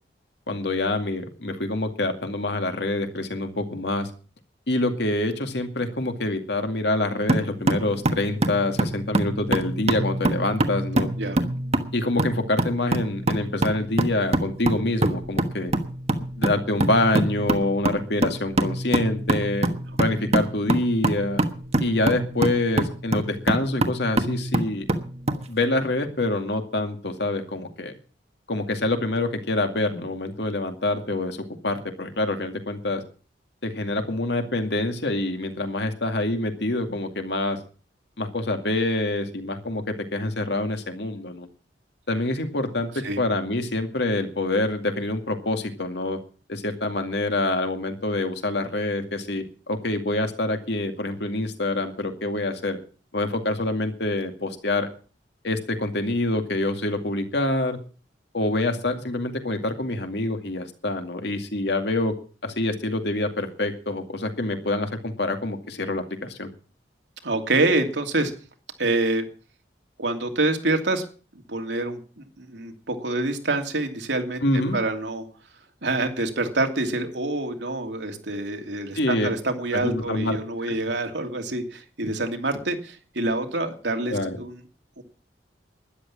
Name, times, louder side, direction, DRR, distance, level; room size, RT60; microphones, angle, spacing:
voice 1, 0.5-4.1 4.7-11.1 11.9-15.7 16.4-19.7 20.0-21.4 21.8-24.9 25.5-27.9 28.5-31.4 31.6-33.0 33.6-37.6 38.2-41.5 42.1-46.2 46.5-52.8 53.1-54.9 55.4-57.8 58.3-62.1 62.4-66.5 74.4-74.8 79.0-79.3 79.7-80.4 84.1-84.4, left 2 dB, 65° left, 6 dB, 2.3 m, -26 dB
sound 1, 7.3-25.4, right 1 dB, 35° right, 1.3 m, -25 dB
voice 2, 67.2-68.3 68.8-69.2 70.0-71.0 71.5-75.2 75.8-84.6 85.0-85.1, right 2 dB, 75° right, 4 dB, 2.7 m, -26 dB
13.0 x 11.0 x 7.3 m, 0.39 s
head